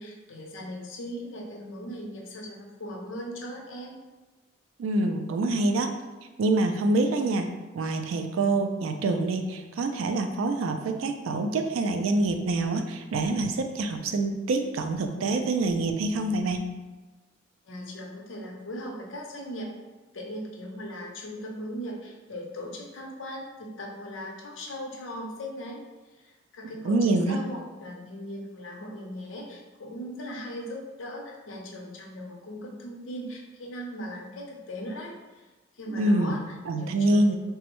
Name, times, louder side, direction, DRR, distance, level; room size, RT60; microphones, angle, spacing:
voice 1, 0.0-4.0 17.6-19.7 20.1-25.8 26.1-35.5 35.7-37.3, equal, 65° left, 0 dB, 0.6 m, -39 dB
voice 2, 4.8-5.9 6.4-7.5 7.7-16.7 26.8-27.4 35.9-36.3 36.7-37.3, right 2 dB, 80° right, 6 dB, 0.3 m, -26 dB
3.4 x 2.0 x 2.9 m, 1.2 s
head